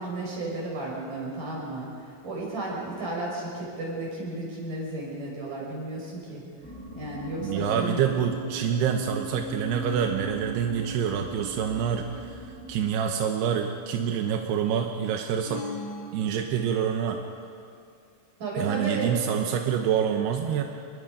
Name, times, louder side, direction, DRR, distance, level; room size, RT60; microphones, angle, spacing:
voice 1, 0.0-1.9 2.2-6.4 6.9-8.0 18.4-19.1, right 2 dB, 45° right, -4 dB, 7.1 m, -33 dB
sound 1, 6.6-12.9, right 3 dB, 5° left, 5.4 m, -39 dB
voice 2, 7.4-15.6 16.1-17.2 18.6-20.6, right 8 dB, 75° right, 4 dB, 2.6 m, -27 dB
sound 2, 15.5-17.1, left 3 dB, 85° left, 6.6 m, -39 dB
26.5 x 22.0 x 5.2 m, 2.4 s
omnidirectional pair, 5.5 m